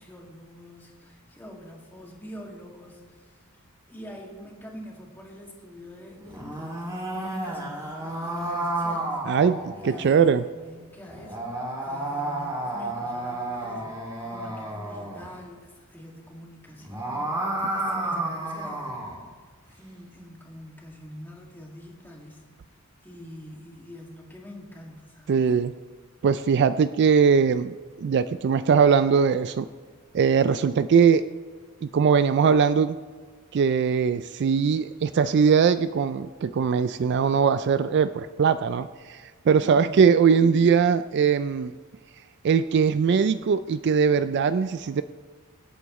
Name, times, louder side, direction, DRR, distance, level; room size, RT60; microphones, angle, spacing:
voice 1, 0.0-3.4 3.9-9.2 9.8-19.0 19.7-22.4 23.0-25.5 39.5-39.9, equal, 10° left, -2 dB, 2.1 m, -45 dB
sound 1, 6.2-10.1 11.1-15.3 16.7-19.2, right 1 dB, 15° right, 2.5 m, -31 dB
voice 2, 9.3-10.4 25.3-25.7 26.2-29.7 30.1-31.2 31.8-33.0 33.5-41.7 42.4-45.0, right 6 dB, 50° right, 13 dB, 0.3 m, -21 dB
24.5 x 8.4 x 3.1 m, 1.5 s
head